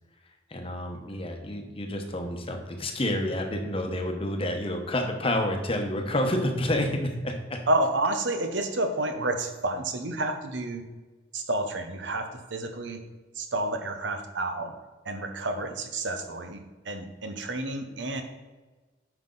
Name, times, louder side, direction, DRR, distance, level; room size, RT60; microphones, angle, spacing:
voice 1, 0.5-7.6, left 1 dB, 30° left, 4 dB, 1.0 m, -29 dB
voice 2, 7.7-10.8 11.3-13.0 13.3-14.7 15.0-18.2, right 2 dB, 75° right, 6 dB, 1.0 m, -30 dB
9.4 x 5.8 x 3.9 m, 1.3 s
head